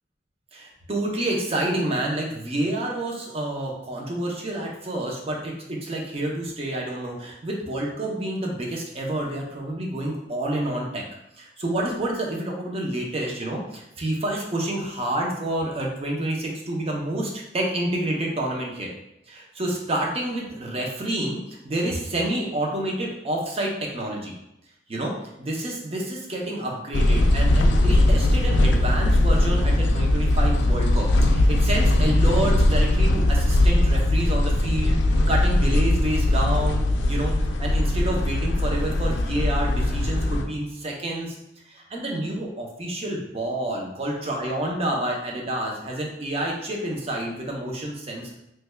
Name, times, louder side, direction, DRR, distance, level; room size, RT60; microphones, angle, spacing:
voice 1, 0.5-11.0 11.4-18.9 19.3-24.3 24.9-34.9 35.3-37.3 37.6-41.4 41.7-48.3, right 1 dB, 35° right, -1 dB, 0.6 m, -28 dB
sound 1, 26.9-40.4, left 1 dB, 80° left, 0.4 m, -20 dB
3.2 x 2.2 x 3.2 m, 0.83 s
head